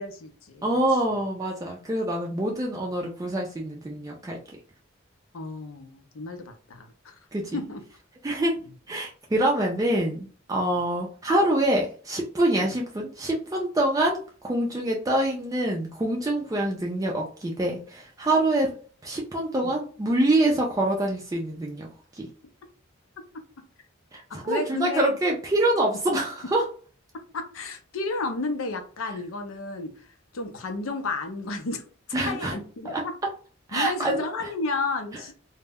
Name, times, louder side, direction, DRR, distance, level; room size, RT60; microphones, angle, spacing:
voice 1, 0.0-0.6 5.3-7.2 7.5-7.8 12.6-12.7 24.3-25.1 27.3-30.1 30.3-31.8 32.3-33.1 33.7-35.3, left 3 dB, 85° left, 6 dB, 0.5 m, -32 dB
voice 2, 0.6-4.4 7.3-7.6 8.2-8.6 8.9-18.8 19.0-22.3 24.1-26.7 32.1-32.5 32.8-33.0 33.7-34.5, right 1 dB, 15° right, -1 dB, 0.3 m, -25 dB
2.1 x 2.0 x 3.4 m, 0.41 s
head